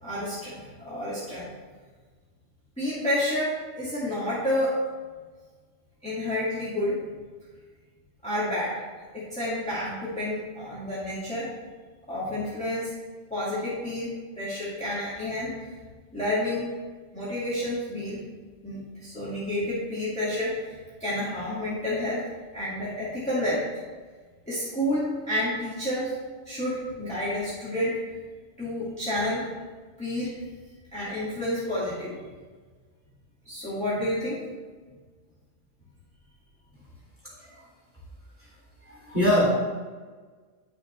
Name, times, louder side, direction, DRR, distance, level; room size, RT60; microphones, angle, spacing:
voice 1, 0.0-1.5 2.8-4.7 6.0-6.9 8.2-8.8 9.1-11.5 12.1-12.9 13.3-15.5 16.1-16.7 17.1-18.2 18.6-22.2 22.5-23.6 24.5-26.1 26.5-28.0 28.6-29.5 30.0-30.4 30.9-32.2 33.5-34.4, left 1 dB, 5° left, -11 dB, 2.1 m, -29 dB
voice 2, 37.2-37.6 38.4-38.5 38.9-39.5, left 1 dB, 10° right, -7 dB, 2.7 m, -24 dB
9.6 x 6.5 x 3.3 m, 1.4 s
omnidirectional pair, 1.2 m